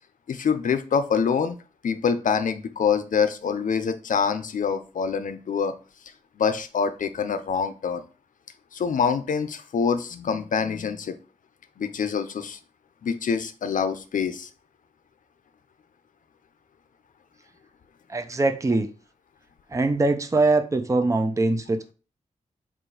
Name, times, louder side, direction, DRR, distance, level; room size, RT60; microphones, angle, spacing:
voice 1, 0.3-1.5 1.8-5.7 6.4-8.0 8.7-11.2 11.8-12.6 13.0-14.5, left 6 dB, 75° left, 0.7 m, -25 dB
voice 2, 18.1-18.9 19.7-21.9, right 2 dB, 25° right, 0.6 m, -22 dB
7.6 x 2.7 x 4.9 m
wide cardioid pair, 140°, 14 cm